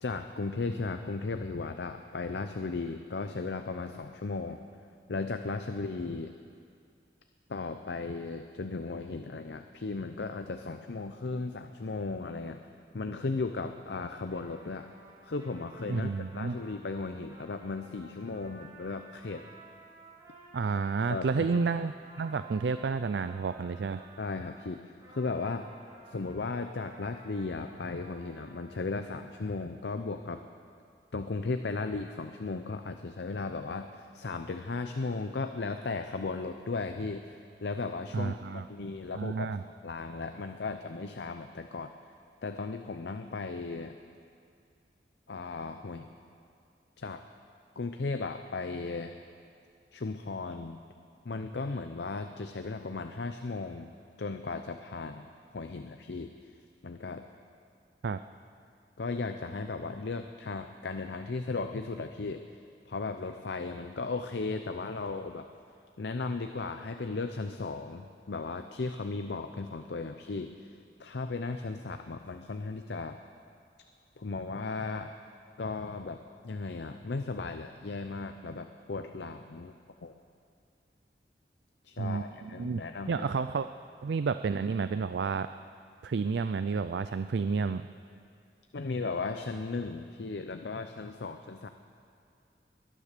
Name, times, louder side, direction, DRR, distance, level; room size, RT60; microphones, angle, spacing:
voice 1, 0.0-4.6 5.1-6.3 7.5-12.6 12.9-14.9 15.2-19.4 21.1-21.5 24.2-24.8 25.1-25.7 26.1-30.4 31.1-39.5 39.8-41.9 42.4-44.0 45.3-46.1 47.0-47.2 47.8-49.2 49.9-50.8 51.2-55.3 55.5-56.3 56.8-57.3 59.0-62.4 62.9-65.5 66.0-70.7 71.0-73.2 74.2-75.1 75.6-76.2 76.4-79.7 80.0-80.1 81.8-83.3 88.7-91.7, left 3 dB, 75° left, 7 dB, 0.6 m, -36 dB
Trumpet, 14.3-24.5 25.0-28.8, right 2 dB, 20° right, 4.7 m, -54 dB
voice 2, 15.9-16.6 20.5-24.0 38.1-38.7 39.1-39.6 58.0-58.2 82.0-82.8 83.1-83.7 84.0-85.5 86.0-87.9, right 5 dB, 75° right, 11 dB, 0.4 m, -30 dB
21.0 x 10.0 x 6.7 m, 2.4 s
head